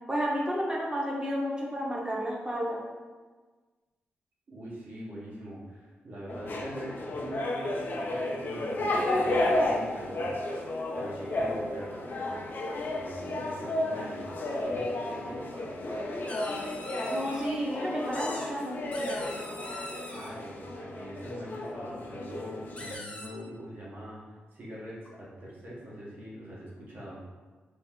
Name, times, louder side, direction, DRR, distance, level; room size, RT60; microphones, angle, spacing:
voice 1, 0.1-2.8 17.1-18.8, equal, 20° right, -3 dB, 0.9 m, -31 dB
voice 2, 4.5-10.4 10.6-12.4 12.9-16.1 20.1-27.2, equal, 55° right, -6 dB, 1.2 m, -43 dB
sound 1, 6.3-23.0, left 1 dB, 55° left, 0.5 m, -32 dB
sound 2, 16.3-17.5 18.1-18.5 18.9-20.3 22.4-22.5 22.8-23.3, left 1 dB, 30° left, 0.9 m, -42 dB
4.0 x 2.0 x 3.7 m, 1.4 s
cardioid pair, 70°, 4 cm